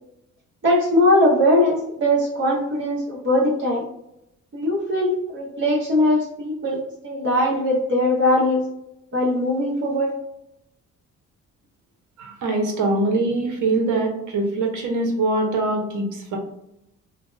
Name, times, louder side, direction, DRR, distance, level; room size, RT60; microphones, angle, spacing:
voice 1, 0.6-3.8 4.5-8.6 9.1-10.1, left 1 dB, 40° right, -5 dB, 0.9 m, -20 dB
voice 2, 12.2-16.1 16.3-16.4, right 2 dB, 75° right, 2 dB, 0.9 m, -23 dB
2.8 x 2.1 x 3.3 m, 0.81 s
cardioid pair, 90°, 30 cm